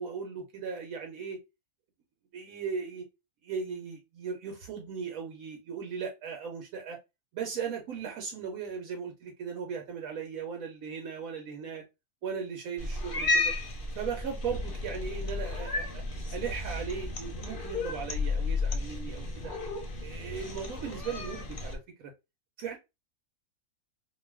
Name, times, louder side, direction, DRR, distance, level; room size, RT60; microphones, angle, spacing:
voice 1, 0.0-1.4 2.3-3.1 3.4-7.0 7.3-11.8 12.2-13.5 13.9-16.0 16.3-19.5 20.0-22.1 22.6-22.8, right 6 dB, 75° right, 1.1 m, -37 dB
Cat, 12.8-21.8, left 3 dB, 45° left, 0.8 m, -33 dB
2.6 x 2.3 x 3.1 m
omnidirectional pair, 1.5 m